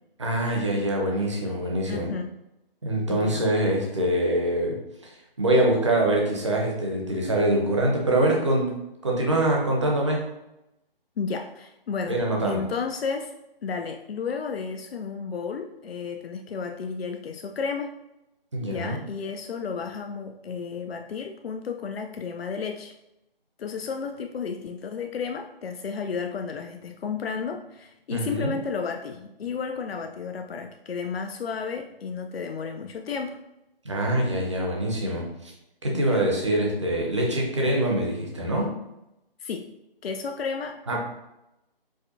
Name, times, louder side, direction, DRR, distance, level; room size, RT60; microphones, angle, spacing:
voice 1, 0.2-2.1 2.8-4.8 5.0-5.1 5.4-8.7 9.0-10.2 12.1-12.6 18.5-19.0 28.1-28.5 33.8-35.5 35.8-38.7 40.9-41.0, right 1 dB, 30° right, -1 dB, 0.7 m, -24 dB
voice 2, 1.9-2.3 3.1-3.5 11.2-13.3 13.6-17.9 18.6-22.9 23.6-33.4 35.9-36.3 39.4-39.7 40.0-41.0, left 5 dB, 85° left, 5 dB, 0.4 m, -32 dB
4.8 x 2.1 x 2.6 m, 0.90 s
figure-of-eight pair, 165°, 29 cm